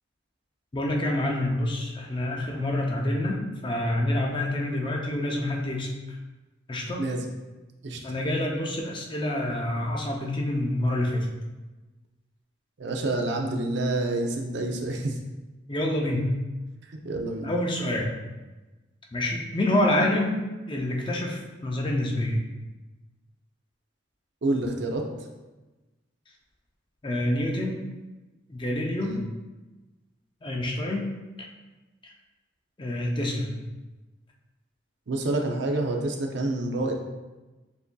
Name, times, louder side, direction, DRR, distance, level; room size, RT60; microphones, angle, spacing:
voice 1, 0.7-5.9 6.7-7.0 8.0-11.3 15.7-16.3 17.4-18.1 19.1-20.4 20.7-22.4 27.0-27.8 28.5-29.1 30.4-31.0 32.8-33.5, left 1 dB, 25° left, -1 dB, 0.5 m, -27 dB
voice 2, 12.8-15.2 16.9-17.5 24.4-25.0 29.0-29.2 35.1-37.0, right 2 dB, 60° right, 2 dB, 0.5 m, -28 dB
6.9 x 2.6 x 2.2 m, 1.2 s
head